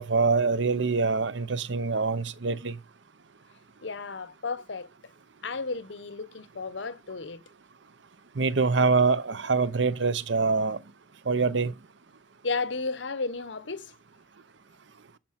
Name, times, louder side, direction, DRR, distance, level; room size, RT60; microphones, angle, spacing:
voice 1, 0.0-2.8 8.4-10.8 11.3-11.7, right 4 dB, 65° right, 0.8 m, -25 dB
voice 2, 3.8-5.1 5.4-7.4 12.4-13.9, left 4 dB, 65° left, 0.9 m, -33 dB
11.5 x 4.5 x 5.8 m
head